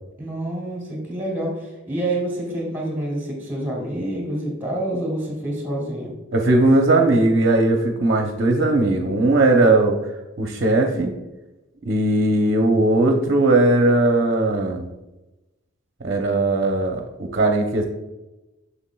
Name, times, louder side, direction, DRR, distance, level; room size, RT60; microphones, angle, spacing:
voice 1, 0.2-6.1, right 1 dB, 10° right, -2 dB, 2.2 m, -27 dB
voice 2, 6.3-10.0 10.4-11.1 11.8-14.9 16.0-17.8, right 2 dB, 50° right, 2 dB, 0.7 m, -18 dB
7.1 x 7.0 x 2.3 m, 1.0 s
head